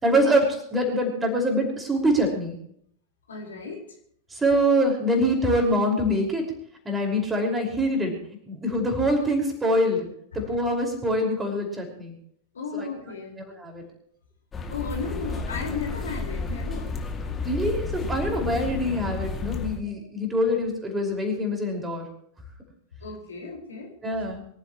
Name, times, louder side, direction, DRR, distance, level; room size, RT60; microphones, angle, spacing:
voice 1, 0.0-2.6 4.3-6.5 6.9-8.1 8.4-10.1 10.3-12.2 12.7-12.9 13.4-13.8 17.4-22.1 24.0-24.4, equal, 15° right, 2 dB, 5.5 m, -24 dB
voice 2, 3.3-3.8 10.3-10.5 12.5-13.4 14.7-16.9 18.5-18.6 23.0-23.9, left 4 dB, 70° left, 2 dB, 4.8 m, -34 dB
sound 1, 14.5-19.8, left 3 dB, 20° left, 2.5 m, -32 dB
24.5 x 15.5 x 3.2 m, 0.67 s
figure-of-eight pair, 90°, 0 cm